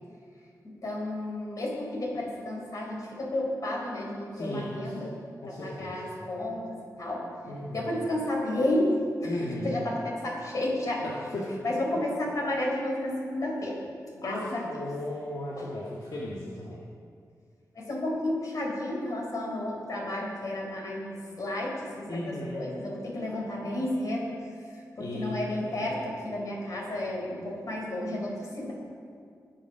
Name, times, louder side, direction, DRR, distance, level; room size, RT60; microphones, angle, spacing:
voice 1, 0.6-5.1 5.4-7.3 7.7-11.0 11.6-13.8 14.1-14.6 15.6-15.7 17.7-22.2 22.5-24.3 24.7-28.7, left 1 dB, 55° left, -2 dB, 4.3 m, -32 dB
voice 2, 4.3-5.1 5.4-6.2 7.4-7.9 9.2-9.8 11.0-11.6 11.9-12.0 14.2-16.8 22.1-22.6 25.0-25.9, left 1 dB, 75° left, -6 dB, 1.9 m, -36 dB
21.0 x 7.5 x 6.2 m, 2.2 s
wide cardioid pair, 120°, 7 cm